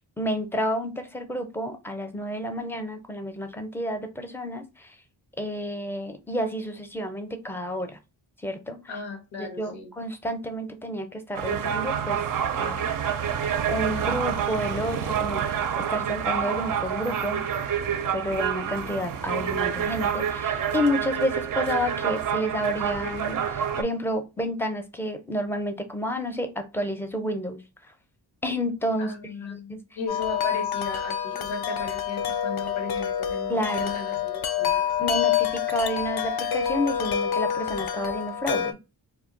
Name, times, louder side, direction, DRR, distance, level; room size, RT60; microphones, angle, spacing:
voice 1, 0.2-5.0 5.4-8.0 8.4-8.8 9.4-12.2 12.6-12.9 13.7-17.4 18.1-27.6 28.4-29.1 29.5-29.8 33.5-33.9 35.0-38.8, equal, 5° left, 0.5 m, -30 dB
voice 2, 8.9-9.9 29.0-35.0, left 4 dB, 85° left, 1.0 m, -36 dB
sound 1, 11.3-23.8, right 8 dB, 50° right, 0.4 m, -28 dB
Wind chime, 30.1-38.7, left 9 dB, 60° left, 0.5 m, -27 dB
2.2 x 2.2 x 3.7 m
cardioid pair, 55°, 44 cm